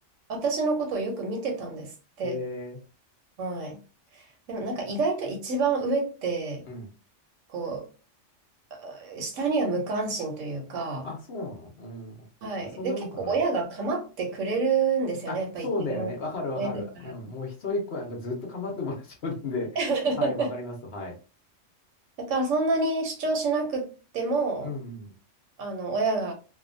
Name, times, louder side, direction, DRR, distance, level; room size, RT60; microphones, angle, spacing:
voice 1, 0.3-2.4 3.4-3.8 4.1-4.2 4.5-6.6 7.5-7.9 8.7-11.1 12.4-16.1 16.6-16.7 17.0-17.1 19.8-20.5 22.2-23.9 24.1-24.7 25.6-26.3, right 3 dB, 80° right, 1.1 m, -28 dB
voice 2, 2.2-2.8 6.7-6.9 11.0-12.3 12.6-13.3 15.3-19.8 20.2-21.2 24.6-25.1, left 2 dB, 55° left, 1.0 m, -34 dB
2.7 x 2.2 x 2.5 m
omnidirectional pair, 1.3 m